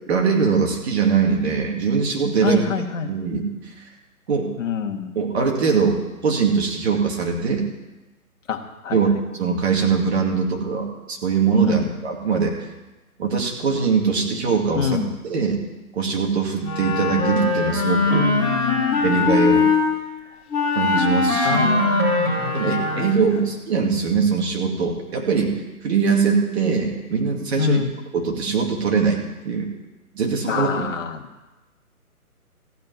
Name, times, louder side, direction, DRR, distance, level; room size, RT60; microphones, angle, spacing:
voice 1, 0.1-2.6 3.1-3.5 4.3-4.5 5.2-6.0 6.2-7.7 8.9-12.5 13.2-15.6 15.9-18.3 19.0-19.6 20.8-21.9 22.5-25.5 25.8-27.8 28.1-29.7 30.1-30.9, right 5 dB, 45° right, 1 dB, 2.5 m, -22 dB
voice 2, 2.4-3.1 4.6-5.1 8.5-9.0 11.6-11.8 14.7-15.1 18.1-19.0 21.4-23.1 27.6-27.9 30.5-31.2, left 6 dB, 55° left, 4 dB, 1.5 m, -26 dB
Wind instrument woodwind instrument, 16.6-19.8 20.5-23.3, left 3 dB, 10° left, 2.5 m, -21 dB
15.0 x 5.2 x 9.6 m, 1.1 s
hypercardioid pair, 150°, 45 cm